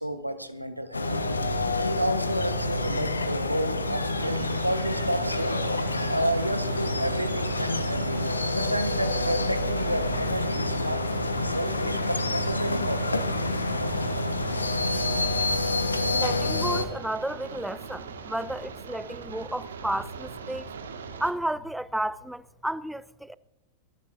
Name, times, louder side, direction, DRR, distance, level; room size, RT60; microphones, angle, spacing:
voice 1, 0.0-1.4 1.8-5.7 6.1-11.1 11.4-13.2, equal, 90° right, 1.2 m, -31 dB
sound 1, 0.9-16.8, left 2 dB, 80° left, 1.2 m, -28 dB
sound 2, 4.2-21.3, right 5 dB, 70° right, 1.8 m, -41 dB
voice 2, 16.1-20.7 21.2-23.3, right 1 dB, 5° right, 0.4 m, -32 dB
26.5 x 12.5 x 2.7 m
figure-of-eight pair, 90°, 0 cm